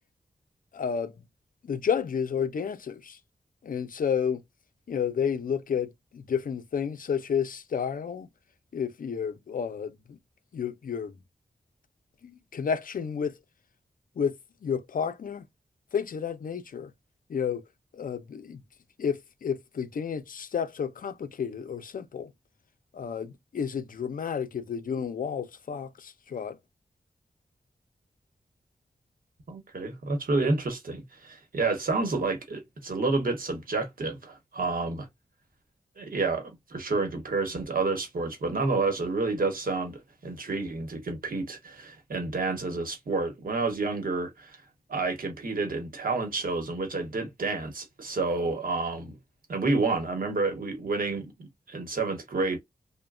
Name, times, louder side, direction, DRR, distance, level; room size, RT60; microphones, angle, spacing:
voice 1, 0.7-1.1 1.6-3.2 3.6-4.4 4.9-8.3 8.7-10.2 10.5-11.2 12.2-13.4 14.2-15.4 15.9-16.9 17.3-17.6 17.9-18.6 19.0-22.3 22.9-26.6, left 7 dB, 65° left, 0.4 m, -31 dB
voice 2, 29.5-35.1 36.0-44.6 44.9-49.2 49.5-52.6, right 3 dB, 70° right, 1.0 m, -29 dB
3.1 x 2.1 x 2.3 m
wide cardioid pair, 130°, 15 cm